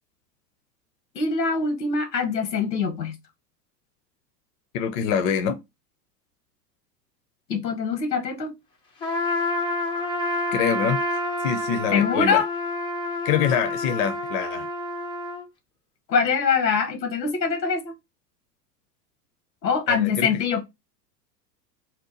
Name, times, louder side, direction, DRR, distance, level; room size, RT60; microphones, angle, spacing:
voice 1, 1.1-3.2 7.5-8.5 11.9-12.5 16.1-17.9 19.6-20.6, left 5 dB, 85° left, 1.0 m, -23 dB
voice 2, 4.7-5.6 10.5-11.0 11.4-12.4 13.2-14.7 19.9-20.4, left 8 dB, 50° left, 0.6 m, -25 dB
Trumpet, 9.0-15.4, left 1 dB, 10° left, 0.4 m, -28 dB
2.9 x 2.1 x 3.8 m
hypercardioid pair, 95°, 50 cm